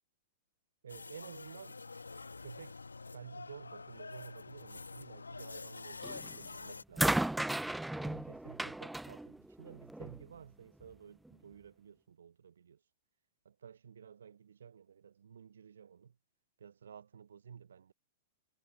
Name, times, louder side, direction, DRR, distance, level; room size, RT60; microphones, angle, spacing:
voice 1, 0.8-2.1 2.4-2.8 3.1-7.3 7.9-12.8 13.4-16.2 16.6-17.9, right 7 dB, 70° right, 1.1 m, -53 dB
sound 1, 0.9-6.8, left 4 dB, 80° left, 1.7 m, -47 dB
sound 2, 6.0-6.4 7.0-10.2 11.2-11.3, right 1 dB, 5° right, 0.5 m, -35 dB
figure-of-eight pair, 100°, 0 cm